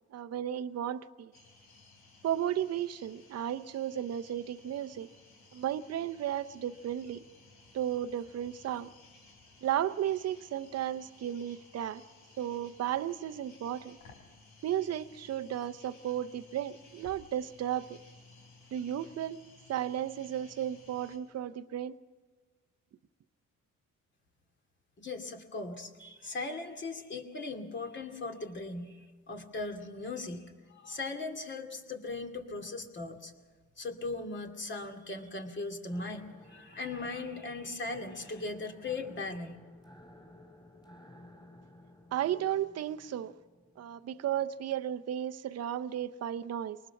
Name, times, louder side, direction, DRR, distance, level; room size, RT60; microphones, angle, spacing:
voice 1, 0.1-1.3 2.2-5.1 5.5-7.2 7.7-8.9 9.6-12.0 12.4-14.0 14.6-18.0 18.7-19.4 19.7-22.0 42.1-43.3 43.8-46.8, right 11 dB, 55° right, 10 dB, 0.8 m, -34 dB
sound 1, 1.3-21.2, left 3 dB, 85° left, 4.3 m, -58 dB
voice 2, 25.0-30.4 30.7-33.3 33.8-39.6, left 3 dB, 40° left, 4 dB, 2.5 m, -39 dB
sound 2, 35.9-44.7, left 1 dB, 15° left, 4.3 m, -56 dB
23.5 x 19.5 x 5.9 m, 1.4 s
cardioid pair, 90°, 30 cm